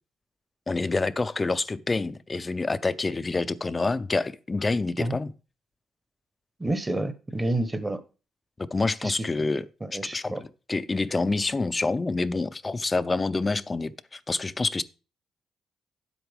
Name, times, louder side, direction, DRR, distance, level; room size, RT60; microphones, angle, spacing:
voice 1, 0.7-5.3 8.6-9.7 9.9-14.8, left 3 dB, 25° left, 0.5 m, -27 dB
voice 2, 6.6-8.0 9.0-9.1 9.8-10.4, right 1 dB, 15° right, 1.0 m, -29 dB
9.2 x 8.1 x 3.6 m
cardioid pair, 90°, 0 cm